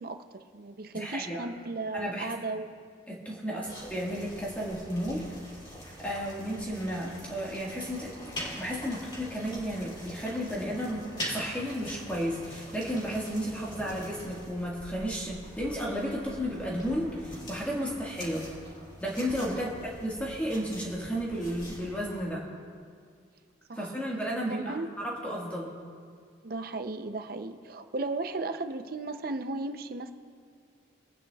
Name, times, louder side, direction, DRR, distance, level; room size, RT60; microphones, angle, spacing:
voice 1, 0.0-2.7 3.5-3.7 19.5-19.6 23.7-23.9 24.4-24.9 26.4-30.1, right 3 dB, 50° right, 9 dB, 0.5 m, -36 dB
voice 2, 0.9-1.4 1.9-2.4 3.1-5.2 6.0-18.5 19.0-22.4 23.7-25.7, equal, 5° left, -4 dB, 1.6 m, -33 dB
sound 1, 3.6-22.2, equal, 25° left, 3.0 m, -43 dB
27.0 x 9.3 x 2.3 m, 2.2 s
head